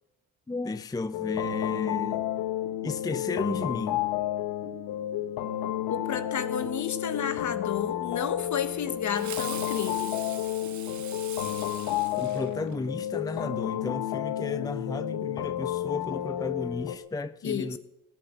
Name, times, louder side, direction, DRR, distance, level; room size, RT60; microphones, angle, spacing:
voice 1, 0.5-2.2 2.8-4.1 12.2-17.8, left 3 dB, 10° left, 0.5 m, -33 dB
sound 1, 1.1-17.0, left 12 dB, 80° left, 1.0 m, -31 dB
voice 2, 5.9-10.1 17.4-17.8, left 8 dB, 55° left, 1.4 m, -32 dB
Fireworks, 9.1-13.0, right 7 dB, 55° right, 1.5 m, -41 dB
17.0 x 7.7 x 8.0 m
supercardioid pair, 60°, 35 cm